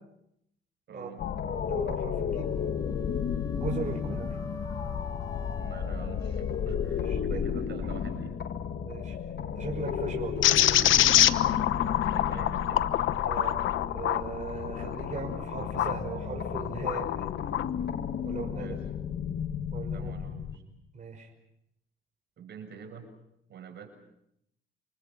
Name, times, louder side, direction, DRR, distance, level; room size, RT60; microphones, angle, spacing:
voice 1, 0.9-1.3 3.6-3.8 5.6-8.4 12.1-12.9 18.5-18.9 19.9-20.6 22.4-23.1 23.5-23.9, right 7 dB, 60° right, 3 dB, 6.7 m, -46 dB
sound 1, 1.2-20.6, left 7 dB, 60° left, 1.9 m, -33 dB
voice 2, 1.6-2.6 3.5-4.3 6.9-7.9 8.8-9.2 9.5-11.2 13.2-13.6 13.9-17.3 18.2-18.8 19.7-20.1 20.9-21.3, right 4 dB, 40° right, 0 dB, 5.7 m, -38 dB
sound 2, 2.3-7.3, left 1 dB, 15° left, 2.2 m, -46 dB
sound 3, 10.4-16.0 16.5-17.7, left 12 dB, 80° left, 1.0 m, -26 dB
29.0 x 26.5 x 5.9 m, 0.79 s
cardioid pair, 90°, 20 cm